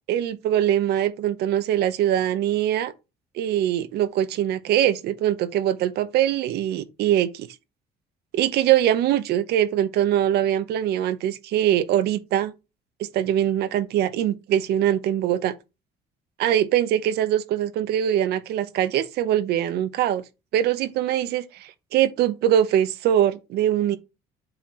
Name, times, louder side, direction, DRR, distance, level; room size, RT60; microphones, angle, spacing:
voice 1, 0.1-2.9 3.3-7.5 8.3-12.5 13.0-15.5 16.4-20.2 20.5-24.0, right 11 dB, 75° right, 0.8 m, -22 dB
7.8 x 4.3 x 3.1 m
cardioid pair, 110°, 17 cm